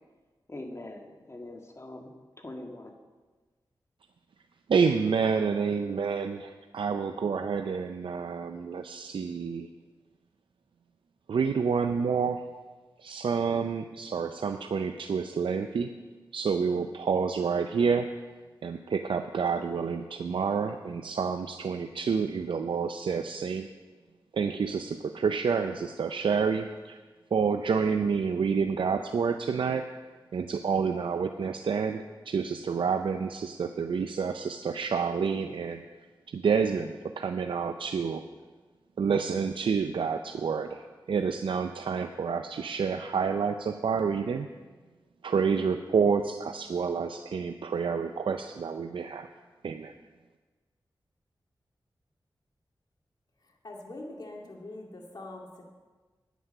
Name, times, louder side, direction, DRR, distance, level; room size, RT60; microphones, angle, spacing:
voice 1, 0.5-2.9, left 1 dB, 35° left, 3 dB, 1.7 m, -43 dB
voice 2, 4.7-9.7 11.3-12.4 13.0-15.9 16.3-18.1 18.6-23.7 24.3-27.0 27.3-29.8 30.3-35.8 36.3-38.2 39.0-40.8 41.1-44.5 45.2-49.3 49.6-49.9, right 6 dB, 80° right, 7 dB, 0.5 m, -28 dB
voice 3, 53.6-55.6, left 2 dB, 55° left, 0 dB, 2.3 m, -43 dB
9.4 x 9.3 x 6.6 m, 1.3 s
cardioid pair, 60°, 9 cm